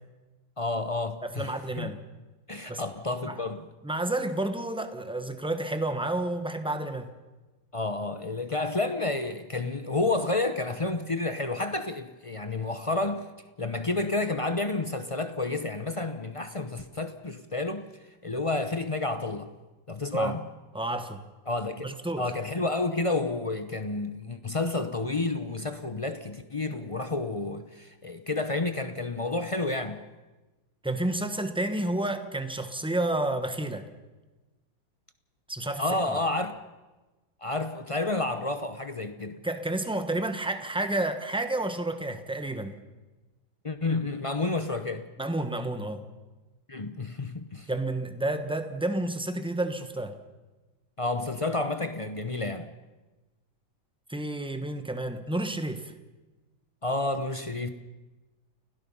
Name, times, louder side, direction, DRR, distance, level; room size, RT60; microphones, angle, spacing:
voice 1, 0.6-1.9 2.5-3.7 7.7-13.3 13.6-17.9 18.2-19.5 19.9-20.4 21.5-30.0 35.8-36.6 37.4-39.4 43.6-45.0 46.7-47.7 51.0-52.7 56.8-57.7, left 2 dB, 50° left, 0.3 m, -30 dB
voice 2, 1.2-2.0 2.7-2.8 3.2-3.4 3.8-7.1 20.1-20.3 20.7-21.2 21.8-22.3 30.8-33.9 35.5-35.8 39.4-42.7 45.2-46.0 47.7-50.2 54.1-55.9, right 1 dB, 5° right, 1.0 m, -30 dB
30.0 x 17.0 x 5.6 m
omnidirectional pair, 2.1 m